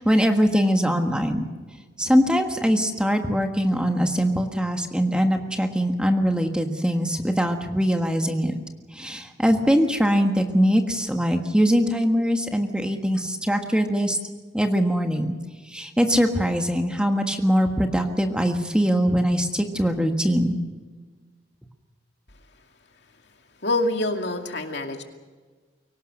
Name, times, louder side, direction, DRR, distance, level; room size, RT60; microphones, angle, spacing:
voice 1, 0.0-1.4 2.0-8.6 8.9-14.2 14.5-15.4 15.7-20.6, equal, 5° right, 4 dB, 1.5 m, -22 dB
voice 2, 23.6-25.0, left 2 dB, 65° left, 4 dB, 2.3 m, -26 dB
23.5 x 18.0 x 6.6 m, 1.4 s
head